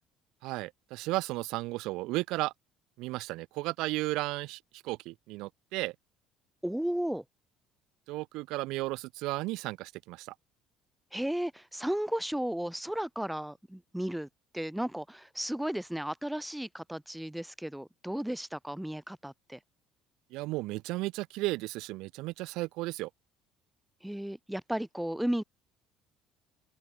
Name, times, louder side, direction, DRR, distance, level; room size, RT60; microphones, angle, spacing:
voice 1, 0.4-2.5 3.0-5.9 8.1-10.3 20.3-23.1, right 20 dB, 75° right, 4.7 m, -34 dB
voice 2, 6.6-7.2 11.1-14.3 14.5-19.6 24.0-25.4, right 1 dB, ahead, 6.0 m, -34 dB
open air
cardioid pair, 160°, 0 cm